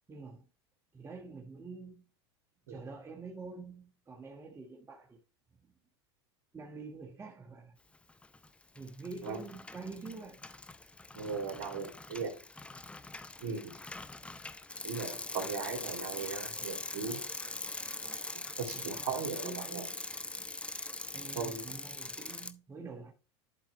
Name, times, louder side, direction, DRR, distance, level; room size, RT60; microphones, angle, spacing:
voice 1, 0.1-0.5 0.9-2.0 2.7-5.2 6.5-7.8 8.7-10.4 18.7-20.0 21.1-23.1, right 4 dB, 20° right, 1.3 m, -46 dB
Bicycle, 8.1-8.5 8.8-22.5, left 2 dB, 10° left, 0.5 m, -42 dB
voice 2, 11.1-12.3 13.4-13.7 14.8-17.2 18.3-19.9 21.3-21.6, right 5 dB, 70° right, 2.5 m, -38 dB
11.0 x 4.5 x 3.1 m
hypercardioid pair, 95°, 14 cm